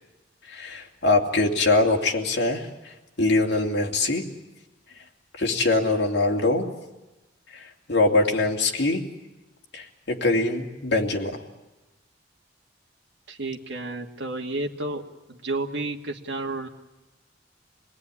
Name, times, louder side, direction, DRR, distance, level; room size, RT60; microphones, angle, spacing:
voice 1, 0.5-2.7 3.2-4.2 5.4-6.7 7.5-9.0 9.7-11.4, left 2 dB, 65° left, 1 dB, 2.8 m, -23 dB
voice 2, 13.3-15.0 15.3-16.7, right 2 dB, 70° right, 1 dB, 2.0 m, -31 dB
27.0 x 19.5 x 9.9 m, 1.1 s
head